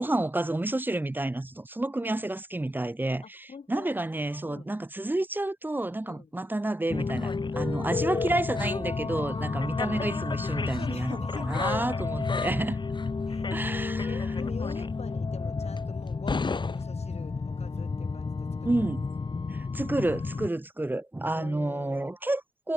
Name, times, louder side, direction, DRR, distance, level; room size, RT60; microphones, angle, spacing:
voice 1, 0.0-12.8 13.5-14.2 18.6-19.1 19.5-22.7, right 2 dB, 15° right, 0.5 m, -30 dB
voice 2, 3.2-3.9 4.5-4.7 6.0-6.3 9.2-9.6 10.7-12.3 13.3-13.5 13.9-18.7 21.3-22.1, left 5 dB, 70° left, 1.0 m, -45 dB
sound 1, 6.9-20.5, left 4 dB, 45° left, 0.6 m, -31 dB
cardioid pair, 50°, 11 cm